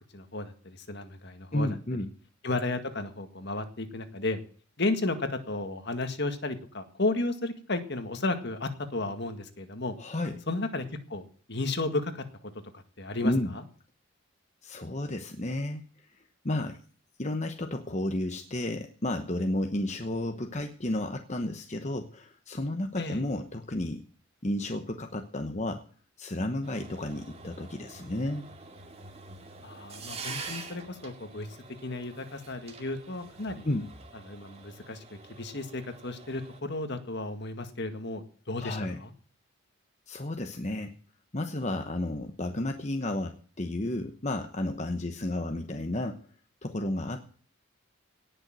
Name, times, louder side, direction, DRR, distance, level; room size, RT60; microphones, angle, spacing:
voice 1, 0.1-1.8 2.4-4.4 4.8-10.0 10.5-11.2 11.5-12.3 12.7-13.6 23.0-23.2 29.6-31.5 31.8-33.6 34.3-39.1, left 2 dB, 50° left, 8 dB, 1.9 m, -33 dB
voice 2, 1.5-2.1 10.0-10.4 13.2-13.5 14.6-16.8 17.2-24.0 24.4-25.8 26.2-28.5 33.6-33.9 38.6-39.0 40.1-40.9 41.3-46.3 46.6-47.3, left 1 dB, 30° left, 6 dB, 1.0 m, -32 dB
sound 1, 26.6-36.6, right 4 dB, 30° right, 2.3 m, -46 dB
18.0 x 6.7 x 7.6 m, 0.43 s
head